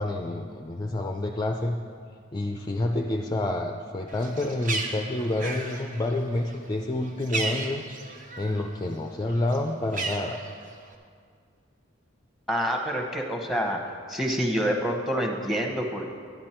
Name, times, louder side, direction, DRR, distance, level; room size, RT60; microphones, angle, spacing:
voice 1, 0.0-1.8 2.3-7.8 8.4-10.4, left 2 dB, 20° left, 2 dB, 0.4 m, -28 dB
Bird, 4.1-8.7 9.0-10.9, right 3 dB, 40° right, 0.9 m, -35 dB
voice 2, 12.5-13.8 14.1-16.1, equal, ahead, 2 dB, 1.0 m, -27 dB
11.0 x 9.6 x 4.4 m, 2.1 s
head